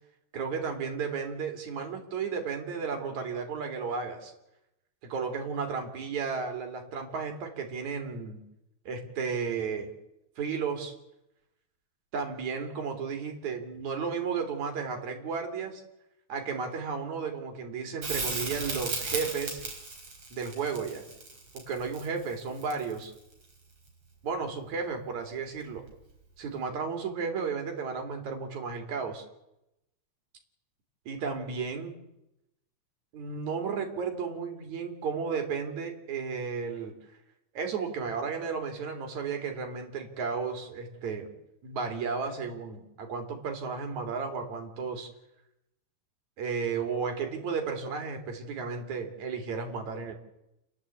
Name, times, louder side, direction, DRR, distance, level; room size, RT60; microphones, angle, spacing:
voice 1, 0.3-4.3 5.0-8.4 8.9-9.9 10.4-10.9 12.1-15.8 16.3-19.6 20.3-21.1 21.5-23.1 24.2-25.8 26.4-29.2 31.1-31.9 33.1-36.9 37.5-41.3 41.6-45.1 46.4-50.1, right 5 dB, 70° right, 4 dB, 4.1 m, -33 dB
Crackle, 18.0-23.1 25.9-26.0, right 3 dB, 50° right, 5.4 m, -35 dB
29.5 x 10.5 x 8.4 m, 0.88 s
omnidirectional pair, 3.4 m